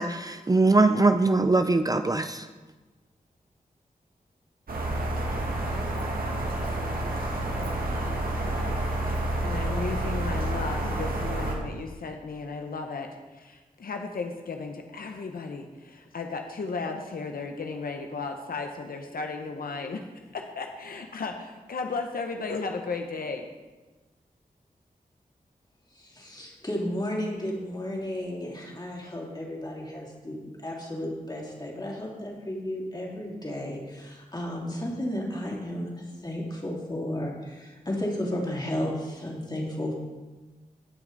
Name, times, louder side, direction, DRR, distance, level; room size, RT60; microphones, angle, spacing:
voice 1, 0.0-2.5, right 3 dB, 25° right, 8 dB, 0.5 m, -22 dB
sound 1, 4.7-11.6, right 1 dB, 75° right, 1.9 m, -29 dB
voice 2, 7.6-8.9 9.4-20.0 20.3-23.5, left 4 dB, 75° left, 4 dB, 0.9 m, -35 dB
voice 3, 25.9-39.9, left 1 dB, 30° left, -3 dB, 3.1 m, -33 dB
16.5 x 6.1 x 4.0 m, 1.2 s
cardioid pair, 60°, 15 cm